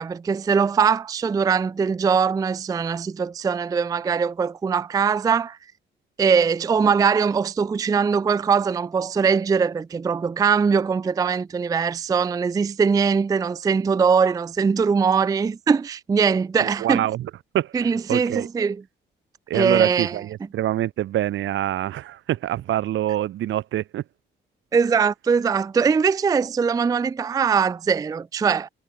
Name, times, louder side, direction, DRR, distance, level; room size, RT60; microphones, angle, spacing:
voice 1, 0.0-5.6 6.2-17.1 17.7-18.8 19.5-20.2 24.7-28.7, right 6 dB, 20° right, 0.3 m, -21 dB
voice 2, 16.6-18.5 19.5-24.0, right 13 dB, 75° right, 1.4 m, -26 dB
cardioid pair, 90°, 20 cm